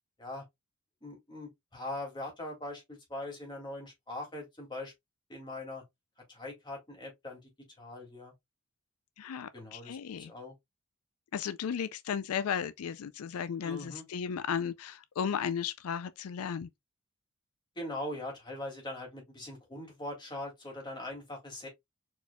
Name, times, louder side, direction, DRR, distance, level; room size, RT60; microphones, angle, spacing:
voice 1, 1.0-4.9 5.3-5.8 6.3-7.5 7.8-8.3 9.5-10.5 13.6-14.1 17.8-21.7, left 1 dB, 20° left, 2.2 m, -41 dB
voice 2, 9.2-10.3 11.3-16.7, left 7 dB, 80° left, 0.4 m, -35 dB
4.6 x 4.2 x 2.2 m
head